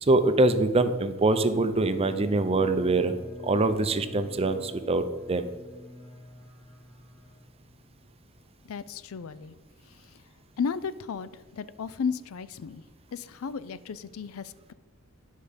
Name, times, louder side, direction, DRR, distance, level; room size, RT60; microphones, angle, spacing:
voice 1, 0.0-3.1 3.4-5.5, right 2 dB, 30° right, 10 dB, 0.6 m, -24 dB
Bowed string instrument, 1.4-8.0, left 1 dB, 60° left, 2.9 m, -48 dB
voice 2, 8.7-9.5 10.6-11.3 11.6-12.8 13.1-14.7, left 6 dB, 85° left, 16 dB, 0.4 m, -34 dB
10.5 x 5.5 x 5.1 m, 1.3 s
head